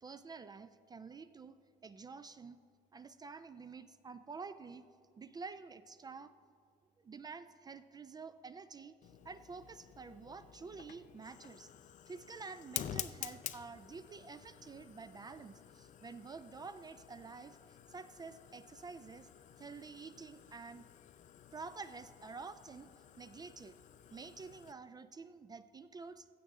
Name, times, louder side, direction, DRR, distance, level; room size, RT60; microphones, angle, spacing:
voice 1, 0.0-1.6 1.8-2.6 2.9-4.8 5.2-6.3 7.0-11.7 12.1-19.3 19.6-20.9 21.5-22.9 23.2-23.8 24.1-26.3, right 4 dB, 25° right, 12 dB, 0.3 m, -49 dB
Fire, 9.0-24.7, left 10 dB, 50° left, 0.4 m, -50 dB
15.5 x 7.3 x 3.6 m, 2.3 s
cardioid pair, 110°, 17 cm